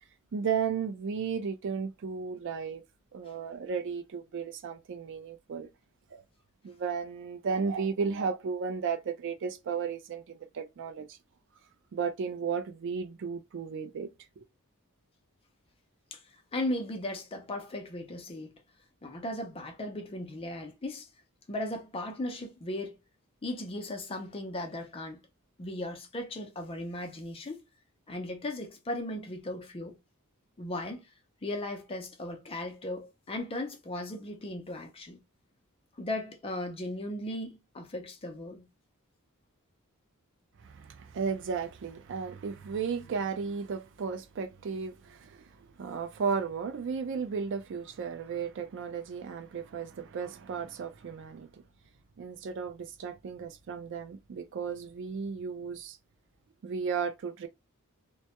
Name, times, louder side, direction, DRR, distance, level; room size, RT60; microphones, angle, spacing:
voice 1, 0.3-2.8 3.1-5.7 6.1-6.2 6.6-11.2 11.9-14.1 14.4-14.5 40.6-45.5 45.8-51.6 52.2-56.0 56.6-57.5, right 6 dB, 60° right, 0.4 m, -34 dB
voice 2, 16.5-18.5 19.0-21.1 21.5-23.0 23.4-25.2 25.6-27.6 28.1-30.0 30.6-31.1 31.4-35.2 36.0-38.7, left 1 dB, 25° left, 0.5 m, -37 dB
2.2 x 2.0 x 2.7 m
head